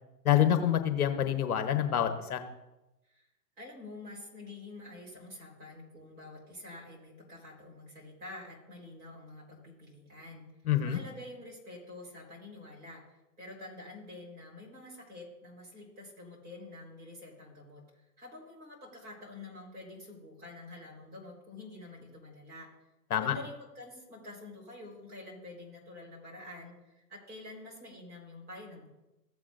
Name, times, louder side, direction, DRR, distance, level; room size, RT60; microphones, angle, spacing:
voice 1, 0.2-2.4 10.7-11.0 23.1-23.3, left 10 dB, 60° left, 7 dB, 1.1 m, -27 dB
voice 2, 3.6-10.5 10.8-17.8 18.2-22.7 23.1-28.9, left 2 dB, 20° right, -2 dB, 3.9 m, -48 dB
15.0 x 8.3 x 2.5 m, 0.98 s
hypercardioid pair, 130°, 50 cm